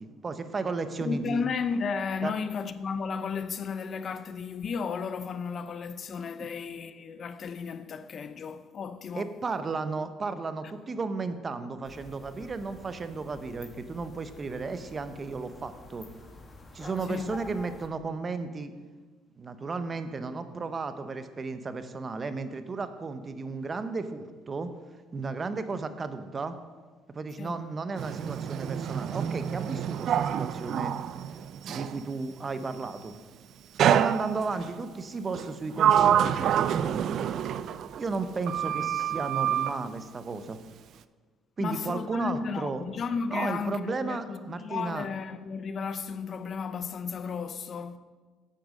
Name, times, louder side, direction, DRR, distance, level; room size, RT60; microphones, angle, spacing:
voice 1, 0.0-1.4 2.2-2.3 9.1-16.1 16.7-18.7 19.4-24.7 25.1-26.6 27.1-30.9 31.7-33.2 33.8-37.0 37.9-40.6 41.6-42.8 43.3-45.1, right 4 dB, 35° right, 0.8 m, -34 dB
voice 2, 1.0-9.3 17.1-17.4 27.4-27.6 41.6-48.0, left 5 dB, 50° left, 0.6 m, -34 dB
sound 1, 11.8-17.9, left 2 dB, 30° left, 1.6 m, -48 dB
Sliding door, 28.0-32.0 33.8-34.7 35.3-38.2 38.5-39.8, right 9 dB, 60° right, 0.4 m, -27 dB
8.6 x 8.0 x 5.4 m
supercardioid pair, 80°, 0 cm